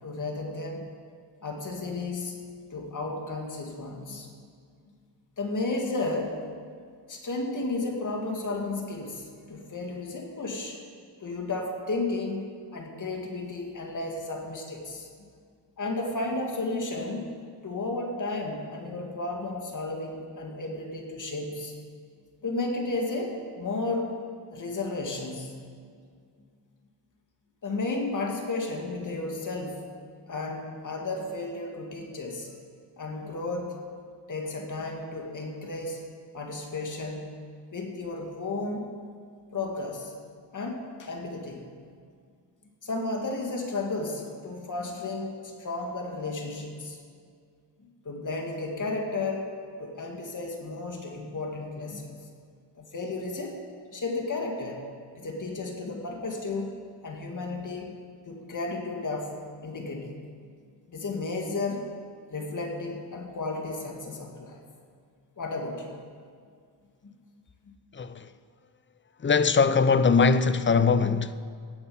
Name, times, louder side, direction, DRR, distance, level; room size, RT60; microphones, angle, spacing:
voice 1, 0.0-0.9 1.4-2.4 2.7-4.3 5.4-6.4 7.1-10.8 11.2-15.1 15.8-17.3 17.6-21.7 22.4-24.1 24.5-25.6 27.6-29.8 30.3-32.5 33.0-33.8 34.3-36.0 36.3-37.3 37.7-39.0 39.5-40.1 40.5-41.7 42.8-47.0 47.8-49.5 49.8-52.2 52.8-53.6 53.9-54.9 55.2-56.7 57.0-57.9 58.3-59.3 59.6-60.2 60.9-61.8 62.3-64.6 65.4-66.0 67.0-67.1 67.6-67.7, left 2 dB, 45° left, 2.5 m, -33 dB
voice 2, 67.9-68.3 69.2-71.3, left 5 dB, 30° left, 0.6 m, -21 dB
17.0 x 8.8 x 7.2 m
wide cardioid pair, 120°, 42 cm